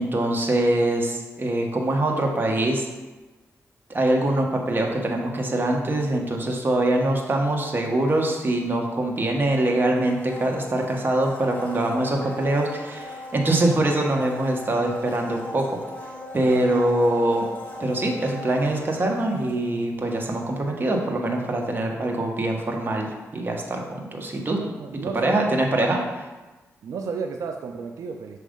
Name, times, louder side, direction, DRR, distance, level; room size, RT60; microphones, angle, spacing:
voice 1, 0.0-2.9 3.9-15.8 16.3-17.5 17.8-24.6 25.1-26.0, right 1 dB, 40° right, 1 dB, 1.1 m, -23 dB
Domestic sounds home sounds, 10.1-20.0 20.3-20.4, left 1 dB, 30° left, 1.3 m, -39 dB
voice 2, 24.5-25.5 26.8-28.4, right 5 dB, 80° right, 4 dB, 0.4 m, -33 dB
6.3 x 3.2 x 5.1 m, 1.2 s
cardioid pair, 80°, 6 cm